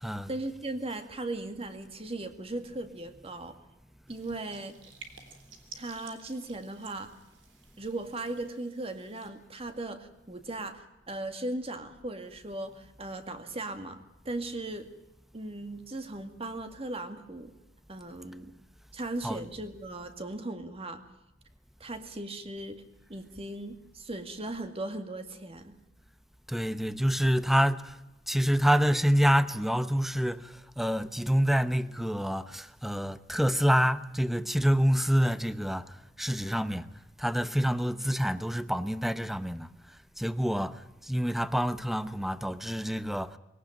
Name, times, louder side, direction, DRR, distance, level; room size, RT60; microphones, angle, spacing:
voice 1, 0.3-3.6 4.1-4.8 5.7-7.1 7.8-14.9 15.3-17.5 17.9-18.5 18.9-21.0 21.8-22.8 23.1-25.8, right 2 dB, 30° right, 2.1 m, -38 dB
sound 1, 4.1-9.3, right 5 dB, 85° right, 3.6 m, -53 dB
voice 2, 26.5-27.9 28.3-36.9 37.2-39.7 40.2-43.4, equal, ahead, 0.8 m, -27 dB
21.5 x 18.0 x 9.1 m
head